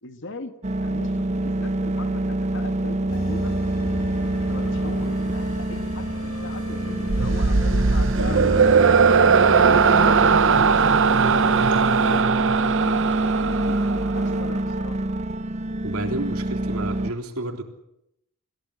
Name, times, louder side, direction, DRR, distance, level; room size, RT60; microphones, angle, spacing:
voice 1, 0.0-0.5 0.8-3.6 4.2-9.3 9.6-13.8 14.1-15.0, left 2 dB, 55° left, 8 dB, 2.0 m, -39 dB
sound 1, 0.6-17.1, right 1 dB, 30° right, 0.8 m, -26 dB
sound 2, 3.1-12.2, equal, 75° left, 5.7 m, -34 dB
sound 3, 7.1-14.5, right 5 dB, 60° right, 0.9 m, -19 dB
voice 2, 15.8-17.6, right 1 dB, 75° right, 4 dB, 3.7 m, -30 dB
26.5 x 16.5 x 8.4 m, 0.79 s
head